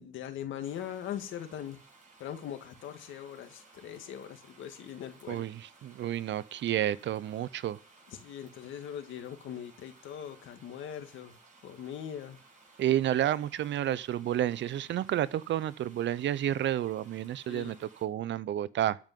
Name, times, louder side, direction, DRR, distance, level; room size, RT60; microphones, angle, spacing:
voice 1, 0.0-1.8 2.2-5.4 8.1-11.4 11.6-12.4 17.5-17.8, left 9 dB, 80° left, 1.8 m, -41 dB
sound 1, 0.6-18.0, right 3 dB, 40° right, 5.7 m, -59 dB
voice 2, 5.3-7.8 12.8-19.0, right 12 dB, 65° right, 0.7 m, -30 dB
13.5 x 5.3 x 9.3 m
cardioid pair, 90°, 20 cm